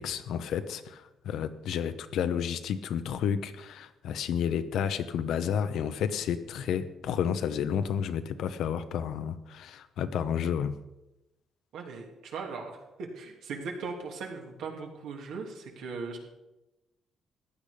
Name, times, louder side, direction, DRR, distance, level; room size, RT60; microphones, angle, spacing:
voice 1, 0.0-10.7, left 8 dB, 80° left, 11 dB, 0.9 m, -31 dB
voice 2, 11.7-16.2, right 4 dB, 85° right, 1 dB, 2.7 m, -39 dB
15.0 x 10.0 x 5.2 m, 0.99 s
cardioid pair, 90°, 0 cm